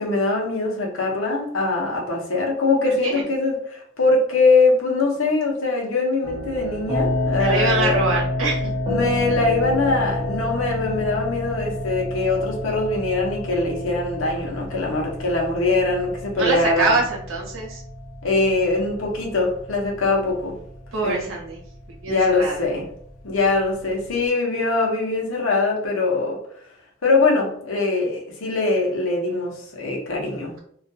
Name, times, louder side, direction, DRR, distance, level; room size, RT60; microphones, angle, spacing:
voice 1, 0.0-8.0 8.9-17.0 18.2-20.6 21.0-21.2 22.1-22.9 23.2-26.4 27.0-30.5, left 3 dB, 85° left, -1 dB, 0.7 m, -22 dB
sound 1, 6.2-24.2, left 1 dB, 20° right, 0.7 m, -29 dB
voice 2, 7.4-8.7 16.4-17.8 20.9-21.6 22.0-22.6, right 3 dB, 80° right, -2 dB, 0.8 m, -24 dB
2.4 x 2.2 x 2.6 m, 0.66 s
head